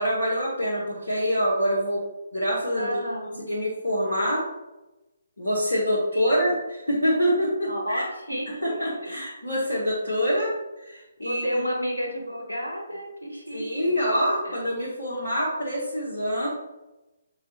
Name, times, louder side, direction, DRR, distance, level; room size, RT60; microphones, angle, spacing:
voice 1, 0.0-2.0 2.3-3.0 3.5-4.5 5.4-8.0 8.5-10.5 10.8-11.6 13.5-16.5, equal, 70° left, -5 dB, 1.0 m, -25 dB
voice 2, 2.8-3.5 6.1-6.4 7.7-9.2 11.2-14.0 14.3-14.6, equal, 90° left, 1 dB, 1.0 m, -32 dB
5.4 x 3.7 x 2.4 m, 1.0 s
figure-of-eight pair, 135°, 0 cm